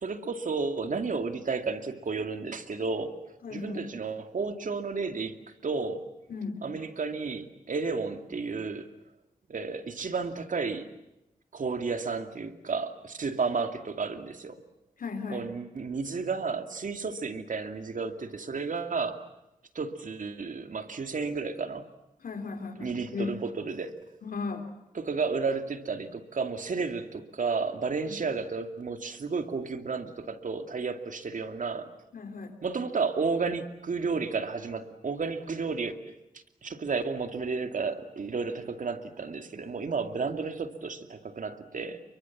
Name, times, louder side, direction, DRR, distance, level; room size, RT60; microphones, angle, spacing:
voice 1, 0.0-3.2 3.5-6.1 6.6-8.9 9.5-10.9 11.5-14.6 15.3-19.2 19.7-21.9 22.8-24.0 24.9-31.9 32.6-36.2 36.6-42.0, right 4 dB, 65° right, 8 dB, 2.5 m, -32 dB
voice 2, 3.4-3.9 6.3-6.6 15.0-15.4 22.2-23.4 24.2-24.7 28.0-28.2 32.1-32.5, left 4 dB, 80° left, 6 dB, 4.0 m, -36 dB
30.0 x 23.5 x 7.4 m, 0.92 s
cardioid pair, 70°, 14 cm